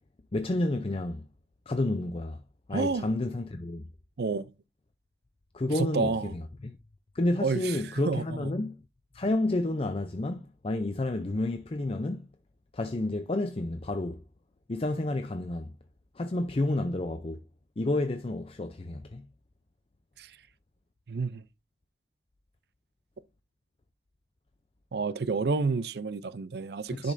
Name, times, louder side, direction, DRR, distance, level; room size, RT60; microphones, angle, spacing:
voice 1, 0.3-1.3 1.7-2.4 2.7-3.9 5.5-6.8 7.1-8.8 9.1-12.3 12.7-14.2 14.7-15.8 16.2-17.4 17.8-19.3 26.9-27.1, left 2 dB, 35° left, 0.5 m, -30 dB
voice 2, 2.7-3.1 4.2-4.5 5.7-6.3 7.4-7.8 8.0-8.5 20.2-20.4 21.1-21.4 24.9-27.1, right 4 dB, 65° right, 0.5 m, -30 dB
10.5 x 5.2 x 2.6 m
head